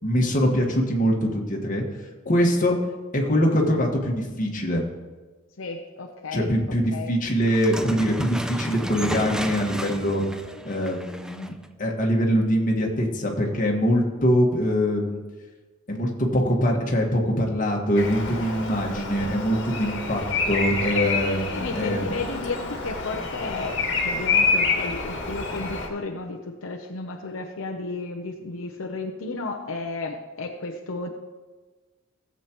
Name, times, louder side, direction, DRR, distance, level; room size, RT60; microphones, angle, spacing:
voice 1, 0.0-1.8 2.2-2.8 3.1-4.8 6.3-10.2 10.6-15.2 15.9-22.2, equal, 40° left, 0 dB, 1.6 m, -23 dB
voice 2, 5.6-6.5 6.9-7.1 21.5-23.8 24.0-31.1, left 3 dB, 75° left, 2 dB, 0.8 m, -33 dB
sound 1, 7.5-11.7, equal, 5° right, 0.4 m, -33 dB
Bird vocalization bird call bird song, 17.9-25.9, left 4 dB, 60° left, 1.7 m, -27 dB
17.0 x 7.5 x 3.0 m, 1.3 s
head